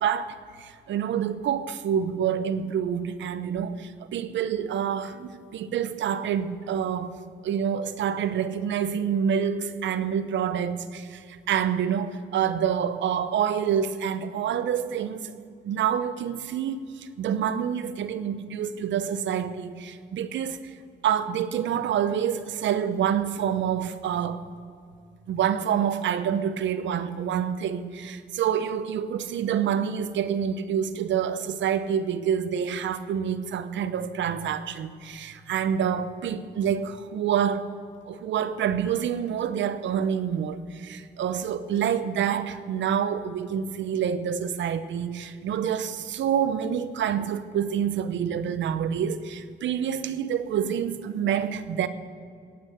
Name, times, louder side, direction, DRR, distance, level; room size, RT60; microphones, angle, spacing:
voice 1, 0.0-7.2 7.4-15.3 15.6-20.6 21.0-24.4 25.3-37.7 38.1-51.9, right 8 dB, 70° right, 0.9 m, -27 dB
17.5 x 6.4 x 8.1 m
cardioid pair, 90°, 20 cm